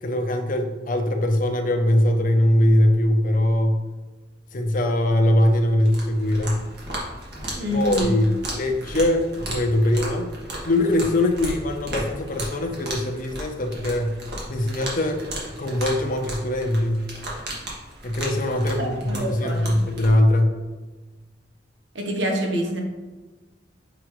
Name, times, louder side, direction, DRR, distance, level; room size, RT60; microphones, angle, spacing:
voice 1, 0.0-3.8 4.5-6.6 7.7-10.3 10.6-14.2 14.5-15.2 15.6-17.1 18.0-20.5, left 1 dB, 50° left, 4 dB, 0.7 m, -21 dB
sound 1, 5.8-20.1, right 1 dB, 65° right, 1.6 m, -35 dB
voice 2, 7.5-8.2 18.8-19.8 21.9-22.8, equal, 85° right, 1 dB, 1.1 m, -26 dB
6.3 x 4.8 x 3.2 m, 1.2 s
head